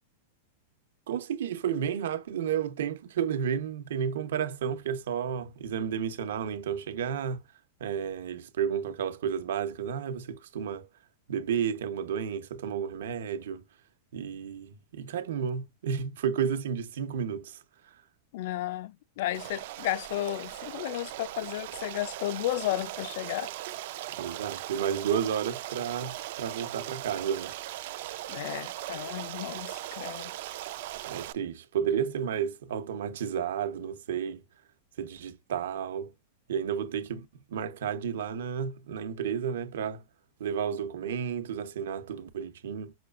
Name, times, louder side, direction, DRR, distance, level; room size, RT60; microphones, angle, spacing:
voice 1, 1.1-7.5 7.8-10.9 11.3-13.6 14.1-17.6 17.8-18.0 24.1-27.5 31.0-34.4 35.0-36.1 36.5-40.0 40.4-42.9, right 8 dB, 75° right, 0.9 m, -32 dB
voice 2, 18.3-23.5 28.3-30.3, left 14 dB, 50° left, 0.3 m, -33 dB
Stream, 19.3-31.3, right 15 dB, 50° right, 0.4 m, -39 dB
6.0 x 2.3 x 2.4 m
supercardioid pair, 175°, 0 cm